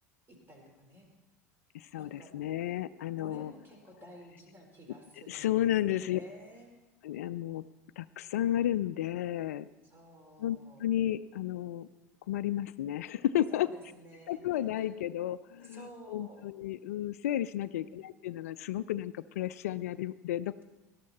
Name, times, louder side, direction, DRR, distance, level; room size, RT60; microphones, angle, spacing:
voice 1, 0.3-1.1 2.0-2.3 3.2-5.5 5.8-6.7 9.8-10.8 13.5-14.9 15.6-16.5 17.6-18.0, right 1 dB, 25° right, 2 dB, 4.4 m, -52 dB
voice 2, 1.7-3.5 5.3-6.2 7.0-7.6 8.0-9.7 10.4-11.9 12.3-13.7 14.3-20.6, left 12 dB, 60° left, 16 dB, 0.4 m, -32 dB
18.0 x 13.0 x 4.2 m, 1.1 s
figure-of-eight pair, 75°, 9 cm